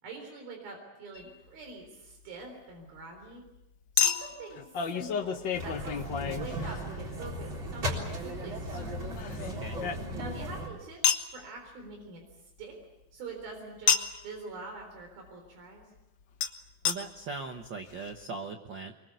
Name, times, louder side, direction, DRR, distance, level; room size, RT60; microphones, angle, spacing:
voice 1, 0.0-3.4 4.0-9.1 10.2-12.2 12.6-12.8 13.1-15.9, right 3 dB, 90° right, 2 dB, 5.8 m, -45 dB
Chink clink, 1.1-1.3 4.0-7.1 8.7-10.4 11.0-11.3 13.9-14.3 16.4-16.5 16.8-17.0 17.6-17.7 17.9-18.0, left 7 dB, 75° left, 1.0 m, -30 dB
sound 1, 5.5-10.7, equal, 35° right, 4.4 m, -36 dB
voice 2, 9.4-9.8 16.8-18.9, right 4 dB, 70° right, 5 dB, 1.0 m, -39 dB
24.5 x 23.0 x 8.2 m, 0.92 s
omnidirectional pair, 4.1 m